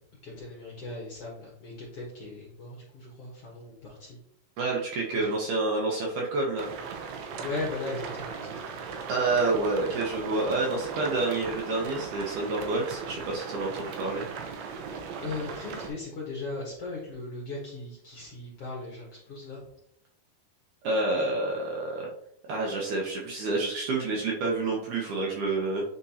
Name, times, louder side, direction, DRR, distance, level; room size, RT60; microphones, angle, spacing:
voice 1, 0.2-4.2 5.1-5.4 7.4-8.7 14.5-19.6, left 3 dB, 55° left, -4 dB, 1.7 m, -38 dB
voice 2, 4.6-6.7 9.1-14.2 20.8-22.1 22.5-25.8, right 3 dB, 70° right, -2 dB, 2.0 m, -28 dB
sound 1, 6.6-15.9, right 5 dB, 85° right, 2.8 m, -38 dB
8.5 x 4.4 x 2.8 m, 0.73 s
omnidirectional pair, 4.4 m